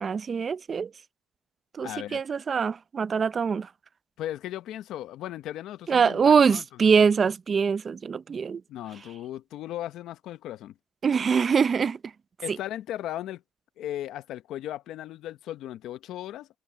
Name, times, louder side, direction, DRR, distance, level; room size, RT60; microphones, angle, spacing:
voice 1, 0.0-0.9 1.8-3.7 5.9-8.6 11.0-12.0 12.5-12.6, right 6 dB, 45° right, 0.5 m, -23 dB
voice 2, 1.8-2.2 4.2-6.6 8.7-10.7 12.4-13.4 13.8-16.5, left 12 dB, 85° left, 0.8 m, -36 dB
cardioid pair, 90°, 0 cm